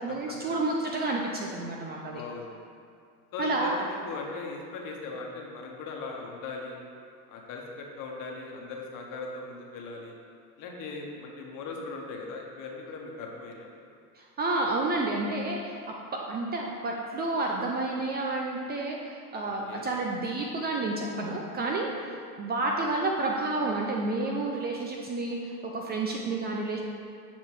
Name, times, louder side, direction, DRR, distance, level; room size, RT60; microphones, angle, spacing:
voice 1, 0.0-2.2 3.4-3.7 14.2-15.8 16.3-26.8, right 2 dB, 20° right, 0 dB, 0.5 m, -30 dB
voice 2, 2.1-2.6 3.3-6.8 7.3-10.1 10.6-13.7 19.7-19.9, left 3 dB, 45° left, 0 dB, 1.4 m, -39 dB
7.7 x 4.9 x 4.7 m, 2.3 s
supercardioid pair, 120°, 46 cm